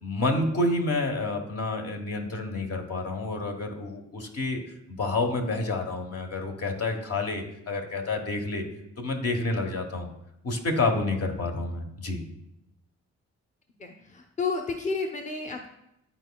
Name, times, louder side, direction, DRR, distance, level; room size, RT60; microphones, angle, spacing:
voice 1, 0.0-4.6 4.9-8.6 9.0-10.1 10.4-12.2, left 2 dB, 55° left, 3 dB, 1.2 m, -29 dB
voice 2, 13.8-15.7, left 4 dB, 25° left, 2 dB, 0.8 m, -31 dB
10.5 x 4.2 x 2.3 m, 0.82 s
cardioid pair, 70°, 29 cm